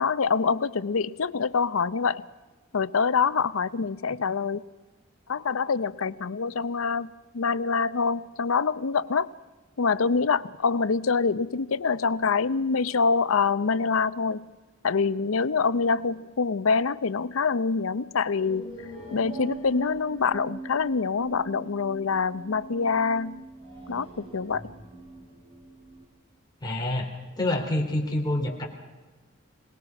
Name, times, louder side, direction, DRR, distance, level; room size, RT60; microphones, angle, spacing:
voice 1, 0.0-2.2 2.7-4.6 5.3-9.3 9.8-14.4 14.8-23.4 23.9-24.7, left 5 dB, 85° left, 16 dB, 0.6 m, -25 dB
sound 1, 18.4-26.0, right 2 dB, 30° right, 6.6 m, -42 dB
voice 2, 26.6-27.1 27.4-28.7, left 1 dB, 20° left, -1 dB, 3.6 m, -27 dB
26.0 x 19.0 x 5.9 m, 1.2 s
head